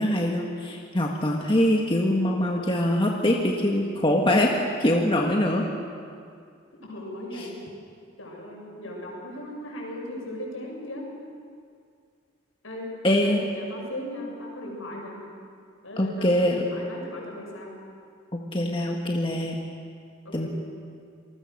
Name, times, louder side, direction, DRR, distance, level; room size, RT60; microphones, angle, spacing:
voice 1, 0.0-4.5 4.8-5.6 7.4-7.5 13.0-13.4 16.0-16.7 18.3-19.6 20.3-20.5, left 1 dB, 25° left, 0 dB, 1.6 m, -23 dB
voice 2, 6.8-7.6 8.2-11.1 12.6-12.9 13.2-15.2 15.8-17.8 20.2-20.5, left 1 dB, 90° left, -1 dB, 7.4 m, -37 dB
28.0 x 20.0 x 6.6 m, 2.2 s
head